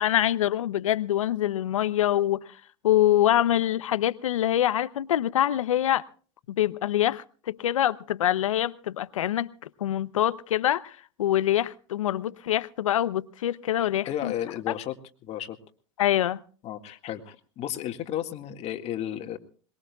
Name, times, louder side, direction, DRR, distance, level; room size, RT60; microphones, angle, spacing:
voice 1, 0.0-2.4 2.8-6.0 6.5-9.5 9.8-14.3 16.0-16.4, left 12 dB, 85° left, 0.8 m, -25 dB
voice 2, 13.8-14.9 15.2-15.6 16.6-19.4, left 11 dB, 40° left, 1.9 m, -33 dB
22.5 x 21.5 x 2.4 m
hypercardioid pair, 105°, 16 cm